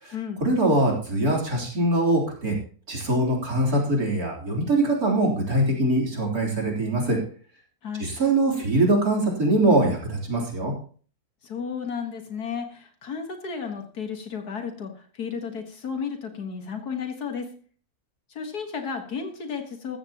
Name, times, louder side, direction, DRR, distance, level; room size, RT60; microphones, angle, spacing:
voice 1, 0.4-2.6 2.9-7.2 8.0-10.7, right 1 dB, 70° right, -2 dB, 4.1 m, -23 dB
voice 2, 11.4-17.5 18.3-20.0, left 6 dB, 80° left, 5 dB, 2.1 m, -33 dB
14.5 x 14.5 x 3.0 m, 0.43 s
omnidirectional pair, 1.6 m